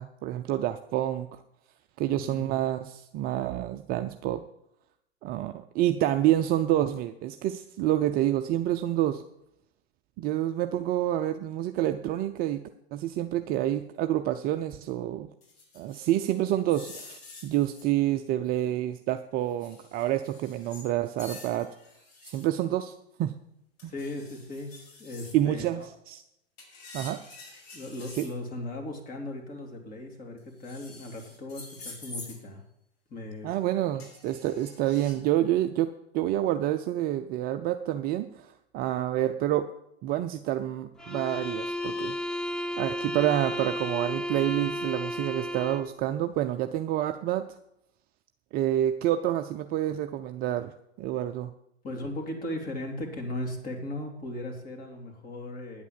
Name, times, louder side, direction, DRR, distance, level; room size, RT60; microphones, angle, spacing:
voice 1, 0.0-1.4 2.0-4.4 5.2-9.2 10.2-12.6 12.9-15.3 15.8-21.7 22.2-22.9 23.2-23.4 23.8-23.9 25.3-26.2 26.9-27.2 28.2-28.3 33.4-39.7 40.0-42.2 42.8-47.5 48.5-50.7 51.0-51.5, right 12 dB, 30° right, 8 dB, 0.5 m, -28 dB
voice 2, 2.0-2.4 23.8-25.9 27.7-32.6 33.1-33.5 33.9-34.0 51.8-55.8, left 1 dB, 25° left, 2 dB, 3.1 m, -37 dB
sound 1, 15.4-17.9 19.5-20.9 21.2-22.5 23.8-25.4 26.6-28.3 30.4-32.4 34.0-35.1, left 3 dB, 65° left, 6.2 m, -47 dB
sound 2, 41.0-46.0, left 1 dB, ahead, 0.9 m, -33 dB
10.0 x 8.3 x 7.4 m, 0.79 s
figure-of-eight pair, 100°, 33 cm